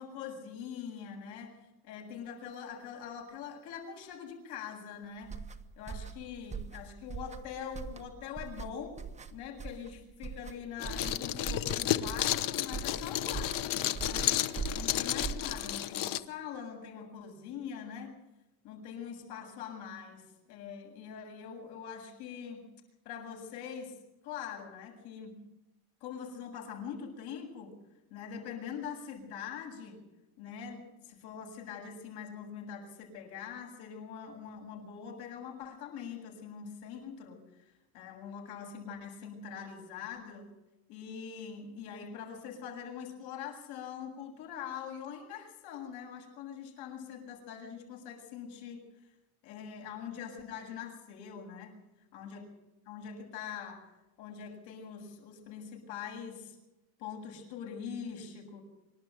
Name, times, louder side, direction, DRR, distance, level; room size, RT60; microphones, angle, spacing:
voice 1, 0.0-5.4 5.8-9.0 9.3-14.4 14.8-18.2 18.6-22.7 23.0-23.9 24.2-25.4 26.0-27.7 28.1-30.0 30.4-40.5 40.9-48.8 49.4-51.8 52.1-52.4 52.9-53.9 54.2-56.6 57.0-58.6, left 7 dB, 80° left, 1 dB, 7.8 m, -43 dB
sound 1, 5.2-15.8, right 6 dB, 15° right, 1.4 m, -42 dB
sound 2, 10.8-16.2, left 13 dB, 55° left, 1.2 m, -32 dB
26.0 x 12.5 x 9.3 m, 0.98 s
cardioid pair, 145°, 39 cm